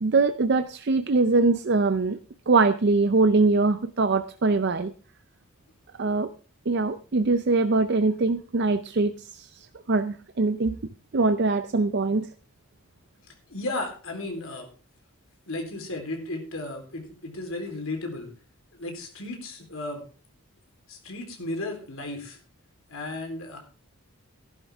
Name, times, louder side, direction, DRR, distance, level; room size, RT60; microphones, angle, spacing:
voice 1, 0.0-2.2 2.5-4.9 6.0-6.3 6.7-10.8 11.1-12.3, right 3 dB, 50° right, 10 dB, 0.5 m, -23 dB
voice 2, 13.5-14.7 15.5-18.3 18.7-20.0 20.9-22.4 22.9-23.6, left 2 dB, 65° left, 3 dB, 3.7 m, -34 dB
14.5 x 11.5 x 3.5 m, 0.38 s
head